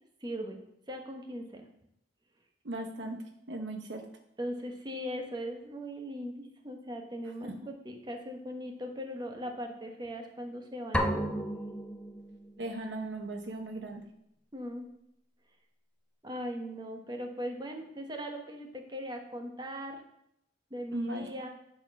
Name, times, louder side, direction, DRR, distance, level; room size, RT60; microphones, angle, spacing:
voice 1, 0.2-0.6 0.9-1.7 4.4-11.0 14.5-14.9 16.2-20.0 20.7-21.5, equal, 25° right, 3 dB, 1.1 m, -39 dB
voice 2, 2.6-3.2 3.5-4.0 7.4-7.5 12.6-14.0 20.9-21.3, right 2 dB, 75° right, 4 dB, 0.9 m, -37 dB
sound 1, 10.9-12.8, equal, 5° left, 0.5 m, -33 dB
9.6 x 4.4 x 6.0 m, 0.78 s
head